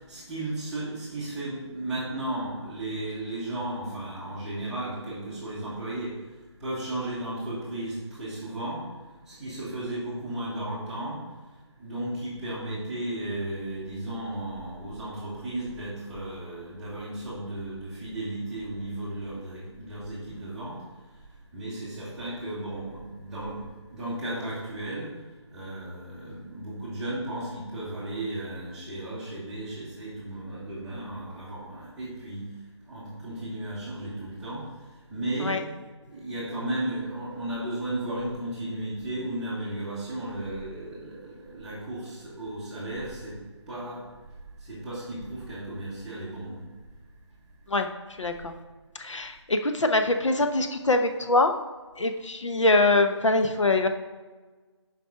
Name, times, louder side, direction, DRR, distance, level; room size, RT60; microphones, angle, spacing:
voice 1, 0.0-6.1 6.6-8.8 9.3-11.2 11.8-20.8 21.5-23.6 23.9-25.1 25.5-32.5 32.9-34.6 35.1-35.6 36.1-43.4 43.7-44.0 44.6-46.6, right 1 dB, 5° right, -11 dB, 1.1 m, -34 dB
voice 2, 48.2-48.5 49.0-51.5 52.0-53.9, left 2 dB, 85° left, 6 dB, 0.9 m, -23 dB
5.7 x 5.2 x 5.7 m, 1.3 s
figure-of-eight pair, 170°, 15 cm